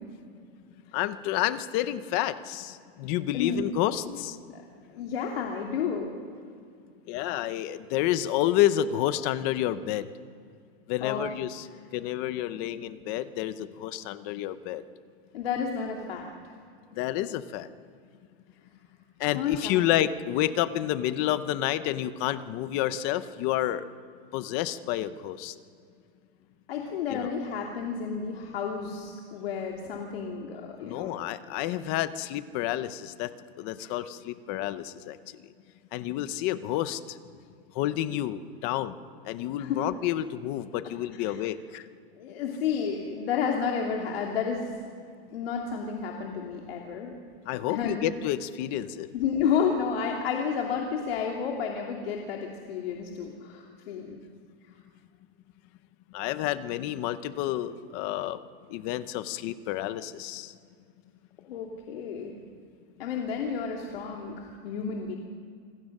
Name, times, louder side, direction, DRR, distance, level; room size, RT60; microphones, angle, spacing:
voice 1, 0.9-4.4 7.1-10.1 10.9-11.7 11.9-14.8 17.0-17.7 19.2-23.8 24.3-25.5 27.1-27.3 30.8-33.3 33.6-35.2 35.9-37.0 37.8-39.0 39.3-41.8 47.5-49.1 56.1-58.4 58.7-60.5, left 13 dB, 25° left, 14 dB, 0.5 m, -29 dB
voice 2, 3.3-3.7 4.0-4.2 4.5-4.6 4.9-6.3 11.0-11.3 15.3-16.5 19.3-19.8 26.7-31.2 39.6-39.9 40.8-41.4 42.2-44.7 45.3-47.1 47.7-48.1 49.1-54.1 61.5-62.3 63.0-65.2, left 6 dB, 70° left, 0 dB, 2.5 m, -31 dB
26.5 x 21.5 x 6.5 m, 2.3 s
supercardioid pair, 180°, 31 cm